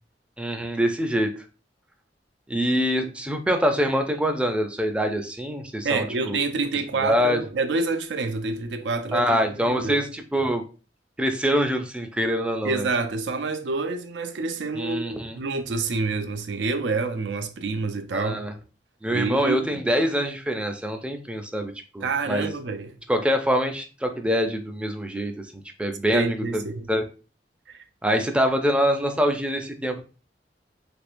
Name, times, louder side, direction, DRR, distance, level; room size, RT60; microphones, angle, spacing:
voice 1, 0.4-1.3 2.5-6.4 7.0-7.4 9.1-10.6 11.2-12.9 14.8-15.4 18.1-18.5 19.0-22.5 23.1-25.5 25.8-26.6 26.9-27.1 28.0-30.0, equal, 5° right, 0.4 m, -25 dB
voice 2, 5.8-9.4 9.7-10.0 12.6-18.4 19.1-19.8 22.0-22.9 26.1-26.9, right 3 dB, 80° right, 0.5 m, -27 dB
3.4 x 3.2 x 2.5 m
head